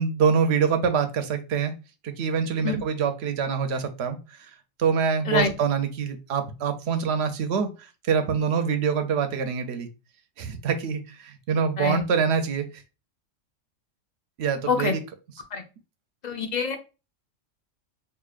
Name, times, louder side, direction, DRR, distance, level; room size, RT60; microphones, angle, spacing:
voice 1, 0.0-1.7 2.0-4.2 4.8-9.9 10.4-12.7 14.4-15.0, right 6 dB, 65° right, 0.8 m, -25 dB
voice 2, 16.2-16.7, left 5 dB, 45° left, 0.7 m, -25 dB
4.8 x 2.6 x 2.4 m
omnidirectional pair, 1.3 m